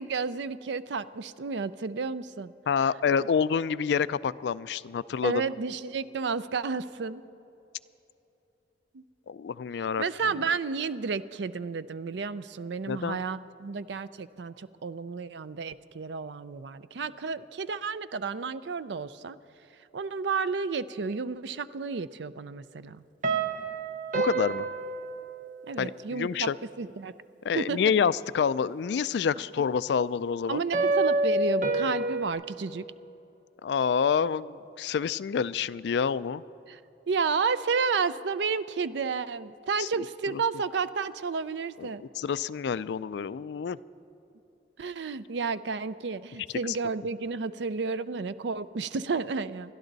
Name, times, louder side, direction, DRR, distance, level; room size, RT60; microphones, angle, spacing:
voice 1, 0.0-2.5 5.2-7.2 8.9-9.0 10.0-19.4 19.9-23.0 25.7-26.5 26.8-27.1 27.5-27.8 30.5-32.8 36.7-36.8 37.1-42.0 44.8-49.7, right 5 dB, 80° right, 14 dB, 0.5 m, -31 dB
voice 2, 2.7-5.4 9.3-10.0 12.9-13.2 24.2-24.7 25.8-26.6 27.4-30.6 33.6-36.4 39.8-40.0 40.3-40.4 41.8-43.8 46.7-46.8, left 6 dB, 70° left, 17 dB, 0.3 m, -28 dB
sound 1, 23.2-25.9 30.7-32.3, right 2 dB, 45° right, 0.7 m, -28 dB
28.5 x 11.5 x 4.0 m, 3.0 s
head